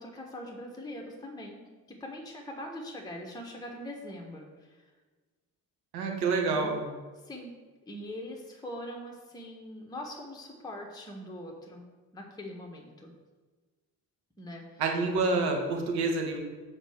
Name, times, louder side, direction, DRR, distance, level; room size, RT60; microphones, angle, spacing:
voice 1, 0.0-1.6 1.9-4.8 6.5-6.7 7.2-7.6 7.9-11.8 12.1-13.1 14.4-14.8 15.1-15.2, left 1 dB, 10° left, -1 dB, 1.5 m, -42 dB
voice 2, 5.9-6.8 14.8-16.4, right 3 dB, 55° right, 2 dB, 1.5 m, -27 dB
8.0 x 4.4 x 6.5 m, 1.3 s
figure-of-eight pair, 45°, 46 cm